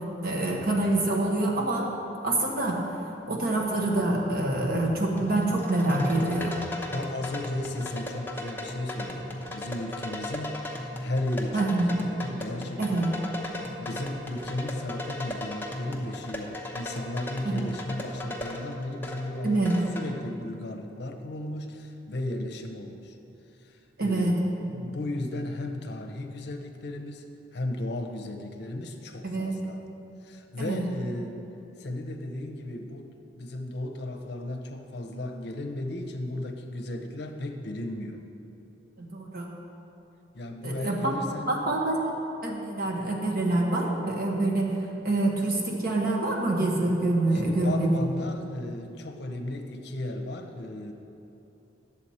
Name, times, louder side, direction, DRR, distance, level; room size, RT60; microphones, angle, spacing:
voice 1, 0.2-1.9 2.2-2.8 3.3-6.6 11.5-11.9 12.8-13.1 17.4-17.7 19.4-19.8 24.0-24.3 29.2-29.6 30.6-30.9 39.0-39.5 40.6-41.1 41.5-42.1 42.4-44.7 45.0-47.9 48.2-48.3, right 2 dB, 55° right, -1 dB, 1.3 m, -26 dB
sound 1, 5.2-20.1, left 1 dB, 10° left, 0.7 m, -37 dB
voice 2, 6.9-23.2 23.6-29.8 30.2-31.4 31.8-33.1 33.4-38.2 40.3-41.6 47.3-50.9, left 1 dB, 60° left, 4 dB, 0.7 m, -35 dB
9.8 x 7.1 x 4.3 m, 3.0 s
head